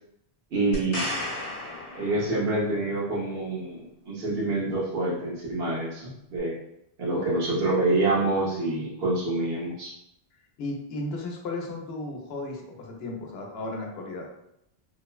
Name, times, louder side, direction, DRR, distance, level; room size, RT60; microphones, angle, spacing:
voice 1, 0.5-1.1 1.9-6.6 7.0-9.9, right 2 dB, 70° right, -6 dB, 1.1 m, -27 dB
sound 1, 0.7-2.7 6.4-6.5, left 1 dB, 40° left, 0.7 m, -34 dB
voice 2, 7.1-7.6 10.6-14.3, left 2 dB, 80° left, 1 dB, 0.8 m, -35 dB
3.0 x 2.1 x 2.2 m, 0.79 s
omnidirectional pair, 1.0 m